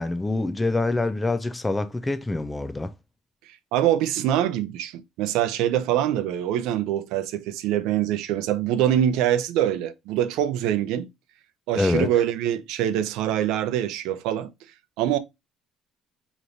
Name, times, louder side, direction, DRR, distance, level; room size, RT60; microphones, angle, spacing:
voice 1, 0.0-2.9 11.7-12.1, left 2 dB, 10° left, 0.3 m, -25 dB
voice 2, 3.7-11.1 11.7-14.5 15.0-15.2, right 11 dB, 85° right, 0.5 m, -24 dB
4.9 x 3.0 x 2.6 m
cardioid pair, 150°, 0 cm